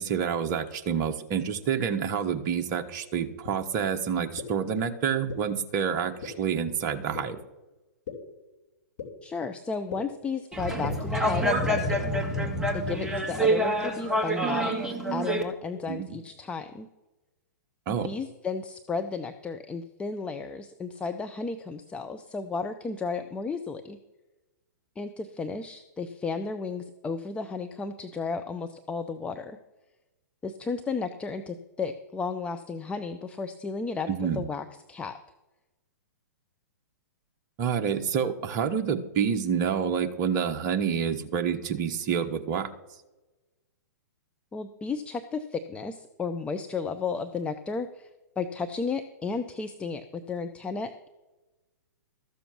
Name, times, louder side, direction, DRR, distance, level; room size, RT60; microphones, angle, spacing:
voice 1, 0.0-7.4 15.9-16.0 17.9-18.1 34.2-34.4 37.6-42.7, right 7 dB, 35° right, 6 dB, 1.2 m, -28 dB
sound 1, 3.4-3.5 4.4-4.5 5.3-5.4 6.2-6.3 7.1-7.2 8.1-8.2 9.0-9.1 9.9-10.0 10.8-10.9 11.8-11.9, left 8 dB, 55° left, 3.1 m, -36 dB
voice 2, 9.2-12.1 12.7-14.8 15.1-16.9 18.0-24.0 25.0-29.6 30.4-35.2 44.5-48.1 48.4-51.1, left 4 dB, 10° left, 8 dB, 0.6 m, -33 dB
sound 2, 10.5-15.4, right 1 dB, 5° right, 1.7 m, -27 dB
13.5 x 7.0 x 6.1 m, 1.1 s
figure-of-eight pair, 115°, 10 cm